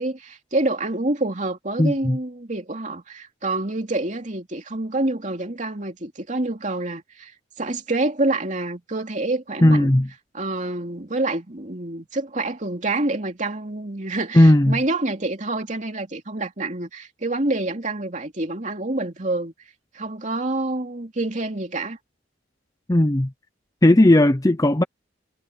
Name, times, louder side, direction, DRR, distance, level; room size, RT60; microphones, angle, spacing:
voice 1, 0.0-7.3 7.6-9.9 10.3-19.5 19.9-22.0, right 2 dB, 40° right, 2.8 m, -27 dB
voice 2, 1.8-2.2 9.6-10.1 14.3-14.8 22.9-23.3 23.8-24.8, left 1 dB, 20° left, 0.6 m, -16 dB
head